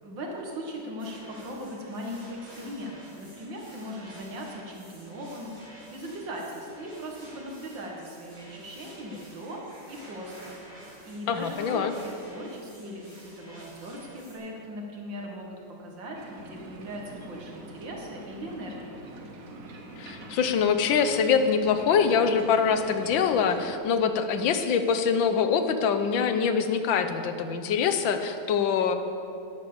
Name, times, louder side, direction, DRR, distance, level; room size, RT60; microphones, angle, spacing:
voice 1, 0.0-10.5 11.0-19.0, equal, 70° right, 0 dB, 2.6 m, -39 dB
sound 1, 1.0-14.4, right 1 dB, 30° right, 4.6 m, -50 dB
voice 2, 11.3-11.9 20.0-29.0, left 6 dB, 80° left, 9 dB, 1.6 m, -24 dB
sound 2, 16.1-23.8, right 1 dB, 50° right, 1.5 m, -43 dB
13.0 x 10.5 x 6.9 m, 2.7 s
omnidirectional pair, 2.1 m